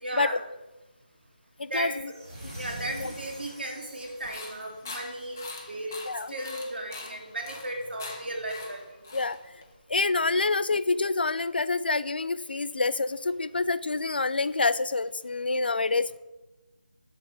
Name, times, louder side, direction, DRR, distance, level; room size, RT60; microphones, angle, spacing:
voice 1, 0.0-0.4 1.7-2.2 2.6-6.0 6.3-8.9, right 1 dB, 90° right, 1 dB, 1.9 m, -35 dB
voice 2, 1.6-2.1 2.4-2.5 2.9-3.1 6.1-6.3 9.1-9.4 9.9-16.2, left 3 dB, 75° left, 15 dB, 0.4 m, -27 dB
sound 1, 2.1-5.4, right 1 dB, 20° right, 1.2 m, -44 dB
sound 2, 4.0-9.8, left 3 dB, 15° left, 0.5 m, -43 dB
7.2 x 3.6 x 6.2 m, 1.1 s
figure-of-eight pair, 180°, 5 cm